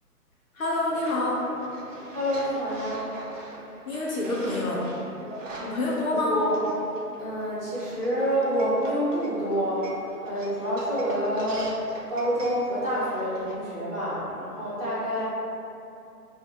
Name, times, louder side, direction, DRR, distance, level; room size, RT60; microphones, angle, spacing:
voice 1, 0.5-1.5 3.9-4.9 5.6-6.3, left 1 dB, 60° left, -4 dB, 0.8 m, -27 dB
sound 1, 0.9-13.5, right 2 dB, 55° right, 0.6 m, -43 dB
voice 2, 2.1-3.0 6.0-6.6 7.2-9.9 10.2-11.7 12.1-15.2, equal, 20° right, -13 dB, 1.3 m, -27 dB
5.5 x 2.7 x 2.3 m, 2.8 s
figure-of-eight pair, 145°, 48 cm